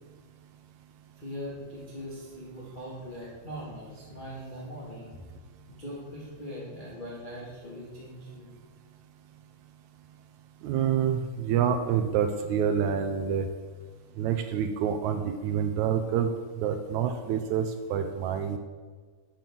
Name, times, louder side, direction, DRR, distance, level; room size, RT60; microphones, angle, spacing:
voice 1, 1.2-5.2 5.7-8.5, equal, 30° left, -7 dB, 0.9 m, -41 dB
voice 2, 10.6-13.5 14.2-16.3 16.6-18.6, right 8 dB, 85° right, 6 dB, 1.7 m, -27 dB
7.5 x 5.9 x 6.9 m, 1.5 s
omnidirectional pair, 3.9 m